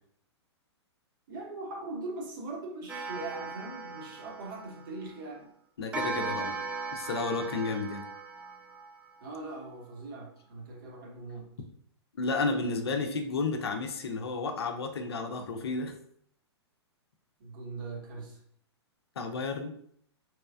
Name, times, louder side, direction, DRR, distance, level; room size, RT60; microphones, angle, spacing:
voice 1, 1.3-5.5 9.2-11.5 17.4-18.4, right 2 dB, 45° right, 0 dB, 0.9 m, -41 dB
Clock, 2.9-5.1 5.9-9.3, right 4 dB, 10° right, 0.4 m, -38 dB
voice 2, 5.8-6.5 6.9-8.0 12.2-15.9 19.2-19.7, left 3 dB, 65° left, 5 dB, 0.5 m, -32 dB
3.1 x 3.0 x 2.2 m, 0.65 s
figure-of-eight pair, 110°, 15 cm